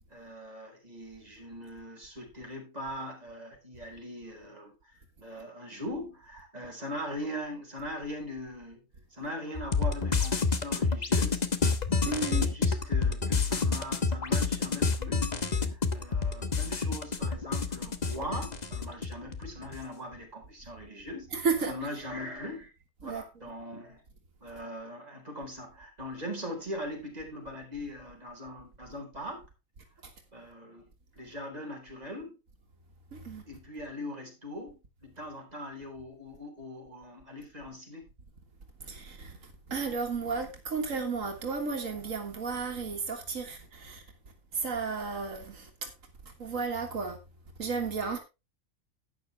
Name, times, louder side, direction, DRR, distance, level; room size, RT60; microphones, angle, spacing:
voice 1, 0.1-4.7 5.2-8.9 9.1-11.4 12.0-15.3 15.6-21.3 21.7-22.7 23.0-24.0 24.4-29.4 30.3-32.4 33.5-38.1, equal, 30° right, 4.4 m, -41 dB
sound 1, 9.5-19.8, left 4 dB, 35° left, 1.2 m, -28 dB
voice 2, 12.1-12.5 21.3-21.7 23.0-23.2 33.1-33.4 38.8-39.4 39.7-44.0 44.5-45.9 46.3-47.2 47.6-48.2, right 4 dB, 90° right, 2.0 m, -33 dB
12.0 x 9.6 x 3.3 m
omnidirectional pair, 1.3 m